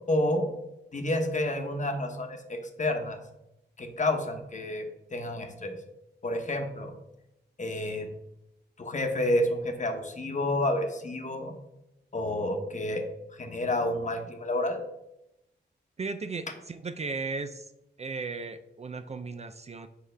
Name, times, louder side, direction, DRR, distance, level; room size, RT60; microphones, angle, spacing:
voice 1, 0.1-0.5 0.9-3.2 3.8-4.9 5.1-5.8 6.2-6.9 7.6-8.1 8.8-11.5 12.1-13.0 13.4-14.8, left 1 dB, 40° left, 4 dB, 1.0 m, -29 dB
voice 2, 16.0-17.7 18.0-19.9, right 4 dB, 35° right, 10 dB, 0.4 m, -36 dB
6.8 x 4.7 x 3.3 m, 0.88 s
wide cardioid pair, 90°, 19 cm